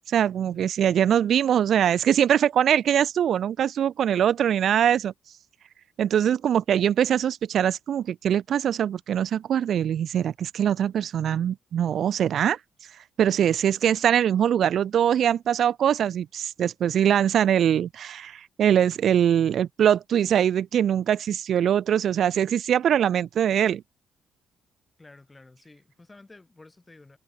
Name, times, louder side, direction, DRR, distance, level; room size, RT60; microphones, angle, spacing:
voice 1, 0.1-5.1 6.0-12.6 13.2-23.8, right 9 dB, 65° right, 0.4 m, -22 dB
voice 2, 25.0-27.2, left 2 dB, 20° left, 7.8 m, -51 dB
cardioid pair, 90°, 0 cm